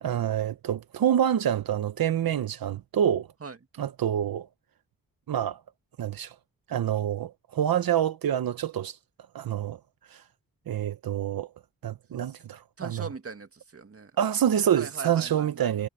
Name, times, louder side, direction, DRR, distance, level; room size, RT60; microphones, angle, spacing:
voice 1, 0.0-3.3 3.8-4.5 5.3-5.6 6.0-6.4 6.7-9.0 9.3-9.8 10.1-10.2 10.7-11.5 11.8-13.1 14.2-15.9, right 10 dB, 80° right, 0.9 m, -27 dB
voice 2, 12.8-14.1 14.8-15.7, right 4 dB, 40° right, 2.0 m, -40 dB
cardioid pair, 80°, 35 cm